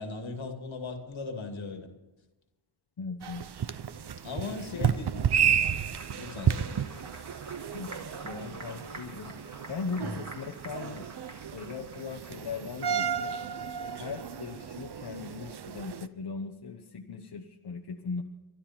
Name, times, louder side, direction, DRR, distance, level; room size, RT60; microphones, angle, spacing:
voice 1, 0.0-1.9 4.2-5.6 6.1-6.8 10.0-10.2, left 3 dB, 70° left, 5 dB, 2.4 m, -38 dB
voice 2, 3.0-3.4 4.4-4.9 5.4-5.5 7.7-9.3 9.7-11.0 11.5-13.3 13.9-18.2, left 5 dB, 55° left, 2 dB, 1.2 m, -39 dB
sound 1, 3.2-16.1, right 8 dB, 55° right, 0.9 m, -32 dB
Applause, 5.3-13.2, right 2 dB, 35° right, 2.7 m, -49 dB
23.5 x 12.0 x 4.4 m, 1.1 s
cardioid pair, 60°, 48 cm